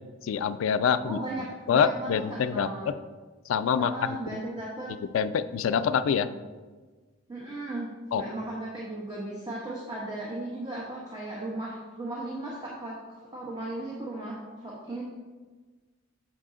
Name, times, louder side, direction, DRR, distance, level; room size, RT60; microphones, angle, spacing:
voice 1, 0.2-1.2 1.7-2.7 3.5-4.4 5.1-6.3 8.1-8.2, left 7 dB, 85° left, 13 dB, 0.3 m, -25 dB
voice 2, 1.0-2.9 3.8-4.9 7.3-7.9 8.1-13.0 13.3-15.0, right 1 dB, 20° right, -5 dB, 0.9 m, -36 dB
6.7 x 4.9 x 3.7 m, 1.4 s
head